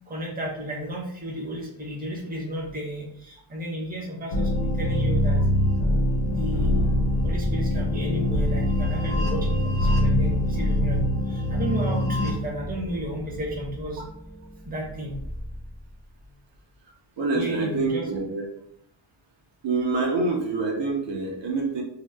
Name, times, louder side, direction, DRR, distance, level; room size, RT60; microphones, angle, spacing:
voice 1, 0.1-4.5 4.8-5.4 6.2-6.9 7.2-14.0 14.7-15.2 17.3-18.0, equal, 20° right, -3 dB, 0.7 m, -33 dB
sound 1, 4.3-12.3, left 1 dB, 85° left, 0.9 m, -24 dB
sound 2, 6.5-16.2, left 1 dB, 20° left, 0.4 m, -34 dB
voice 2, 17.2-18.4 19.6-21.8, right 3 dB, 60° right, 0 dB, 0.7 m, -26 dB
2.8 x 2.1 x 3.3 m, 0.71 s
wide cardioid pair, 165°, 48 cm